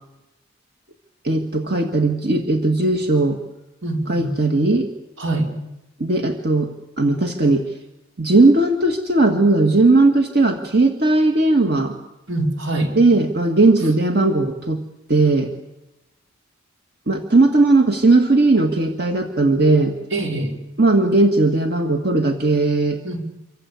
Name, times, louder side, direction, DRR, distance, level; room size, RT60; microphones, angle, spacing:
voice 1, 1.2-3.4 4.1-4.9 6.0-7.7 8.2-12.0 13.0-14.8 15.1-15.5 17.1-19.9 20.8-23.0, right 2 dB, 55° right, 5 dB, 2.0 m, -17 dB
voice 2, 3.8-4.3 5.2-5.5 12.3-12.9 20.1-20.5 23.0-23.2, right 2 dB, 75° right, 3 dB, 5.1 m, -23 dB
26.5 x 25.0 x 8.5 m, 0.95 s
head